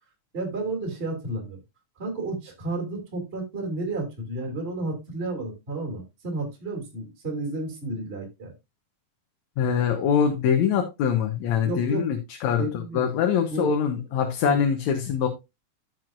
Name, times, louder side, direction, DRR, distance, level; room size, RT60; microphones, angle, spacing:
voice 1, 0.3-1.6 2.0-8.5 11.6-12.1 12.6-13.1 13.5-13.7 14.4-14.6, right 2 dB, 20° right, 2.8 m, -31 dB
voice 2, 9.6-15.3, left 7 dB, 70° left, 2.2 m, -24 dB
14.0 x 6.1 x 2.5 m
omnidirectional pair, 3.6 m